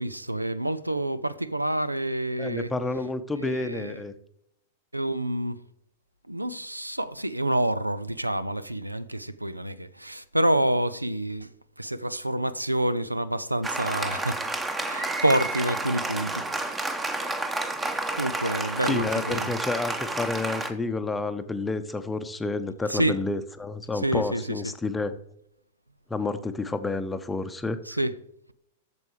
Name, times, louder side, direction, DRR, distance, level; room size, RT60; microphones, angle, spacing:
voice 1, 0.0-2.7 3.3-4.0 4.9-5.6 6.3-11.5 11.8-14.4 14.9-16.7 18.2-19.5 22.9-23.2 24.0-24.6 27.9-28.1, right 1 dB, 90° right, 0.4 m, -28 dB
voice 2, 2.4-4.1 18.8-25.1 26.1-27.8, left 3 dB, 10° left, 0.7 m, -30 dB
Applause, 13.6-20.7, right 2 dB, 15° right, 0.9 m, -30 dB
8.1 x 6.9 x 4.8 m
figure-of-eight pair, 95°, 0 cm